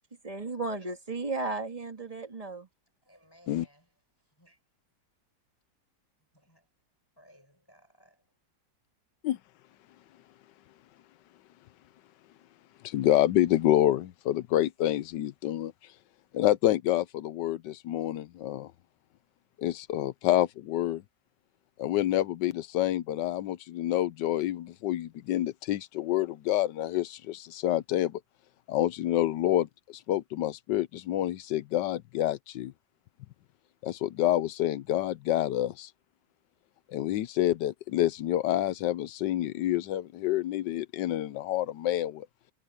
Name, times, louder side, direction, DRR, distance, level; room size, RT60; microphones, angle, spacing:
voice 1, 0.2-2.7, right 3 dB, 20° right, 2.5 m, -34 dB
voice 2, 3.0-4.6 6.3-6.7 7.2-8.4, equal, 10° left, 7.5 m, -61 dB
voice 3, 12.8-15.7 16.3-18.7 19.6-21.0 21.8-28.2 28.7-32.7 33.8-35.9 36.9-42.3, left 13 dB, 80° left, 1.3 m, -28 dB
omnidirectional pair, 1.9 m